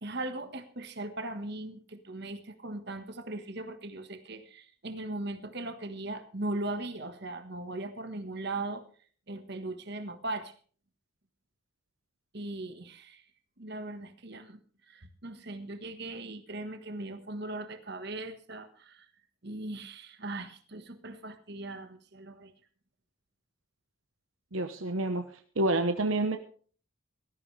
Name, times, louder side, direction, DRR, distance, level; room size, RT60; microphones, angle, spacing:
voice 1, 0.0-8.8 9.3-10.5 12.3-13.2 13.6-19.1 19.4-22.5, right 2 dB, 50° right, 8 dB, 1.4 m, -39 dB
voice 2, 24.5-25.3 25.6-26.4, right 2 dB, 75° right, 7 dB, 1.1 m, -28 dB
17.5 x 14.0 x 3.3 m, 0.42 s
head